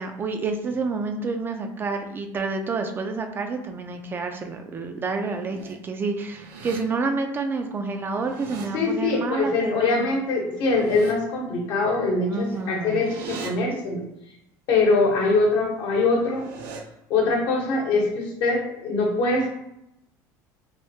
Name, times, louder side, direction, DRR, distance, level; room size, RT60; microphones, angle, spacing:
voice 1, 0.0-10.1 12.3-13.1, right 4 dB, 25° right, 5 dB, 0.3 m, -29 dB
sound 1, 5.2-5.8 6.2-6.8 7.9-8.7 10.5-11.1 12.4-13.5 16.0-16.8, right 5 dB, 80° right, 0.6 m, -40 dB
voice 2, 8.7-14.0 14.7-16.5 17.1-19.5, left 3 dB, 65° left, -1 dB, 1.0 m, -23 dB
3.5 x 2.2 x 2.7 m, 0.84 s
supercardioid pair, 125°, 8 cm